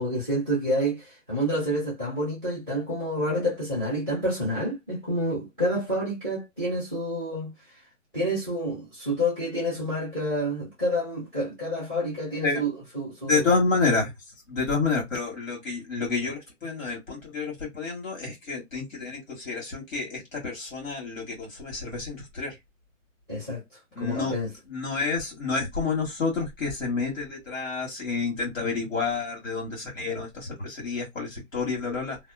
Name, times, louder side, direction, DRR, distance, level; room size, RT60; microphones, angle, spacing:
voice 1, 0.0-7.5 8.1-12.7 12.9-13.4 23.3-23.6 24.0-24.5, equal, 10° left, 0.6 m, -28 dB
voice 2, 13.3-14.1 14.5-22.6 23.9-24.4 24.7-32.2, left 4 dB, 85° left, 1.7 m, -29 dB
2.7 x 2.1 x 2.3 m
hypercardioid pair, 165°, 39 cm